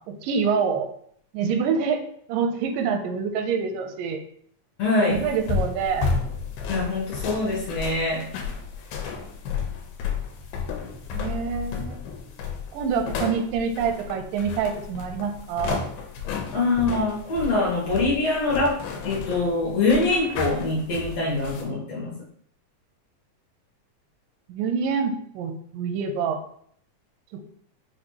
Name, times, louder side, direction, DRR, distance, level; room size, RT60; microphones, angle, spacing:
voice 1, 0.1-0.9 1.3-2.0 2.3-4.2 5.0-6.1 11.1-12.0 12.7-15.8 24.5-26.4 27.3-27.4, right 6 dB, 85° right, 6 dB, 2.1 m, -26 dB
voice 2, 4.8-5.2 6.7-8.2 16.5-18.7 19.0-22.1, left 2 dB, 65° left, -5 dB, 1.9 m, -24 dB
sound 1, 5.1-21.6, left 5 dB, 85° left, 2.1 m, -32 dB
6.1 x 2.5 x 2.9 m, 0.63 s
omnidirectional pair, 3.8 m